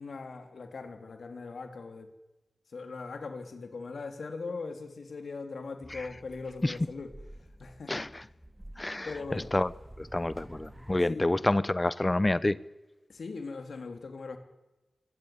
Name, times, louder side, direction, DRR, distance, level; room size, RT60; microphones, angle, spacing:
voice 1, 0.0-2.1 2.7-7.1 7.6-7.9 9.1-9.5 11.1-11.4 13.1-14.4, left 4 dB, 75° left, 3.5 m, -40 dB
sound 1, 5.8-11.0, right 1 dB, 15° right, 3.9 m, -50 dB
voice 2, 7.9-8.3 8.8-9.7 10.0-12.6, left 2 dB, 25° left, 0.9 m, -28 dB
24.0 x 17.5 x 9.7 m
cardioid pair, 50°, 0 cm